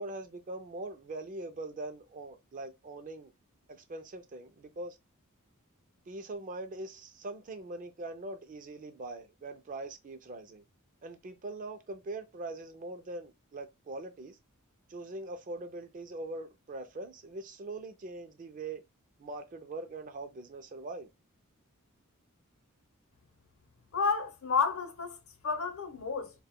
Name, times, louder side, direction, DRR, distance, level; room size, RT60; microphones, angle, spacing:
voice 1, 0.0-3.3 3.7-5.0 6.1-10.6 11.0-14.4 14.9-18.8 19.2-21.1, right 2 dB, 40° right, 0.4 m, -42 dB
voice 2, 23.9-25.2 25.4-26.3, left 5 dB, 70° left, 0.7 m, -30 dB
2.2 x 2.1 x 3.5 m
head